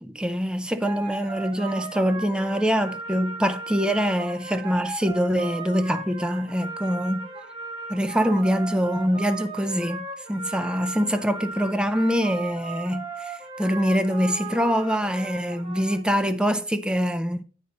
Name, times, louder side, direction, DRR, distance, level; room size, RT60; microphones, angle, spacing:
voice 1, 0.0-7.3 7.9-17.4, equal, 5° right, 0.5 m, -24 dB
sound 1, 0.8-15.9, right 3 dB, 25° right, 2.5 m, -37 dB
8.8 x 4.2 x 5.1 m
head